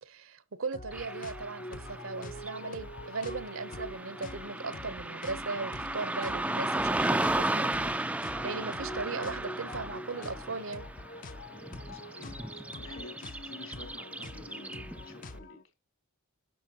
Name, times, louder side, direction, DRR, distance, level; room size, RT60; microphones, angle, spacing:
voice 1, 0.0-7.9 8.4-10.9, right 4 dB, 70° right, 0.8 m, -38 dB
sound 1, 0.7-15.6, left 2 dB, 40° left, 0.6 m, -45 dB
Car passing by / Traffic noise roadway noise, 0.9-15.2, right 2 dB, 5° right, 0.3 m, -35 dB
voice 2, 11.5-15.6, left 1 dB, 65° left, 2.5 m, -51 dB
10.0 x 7.0 x 2.9 m
head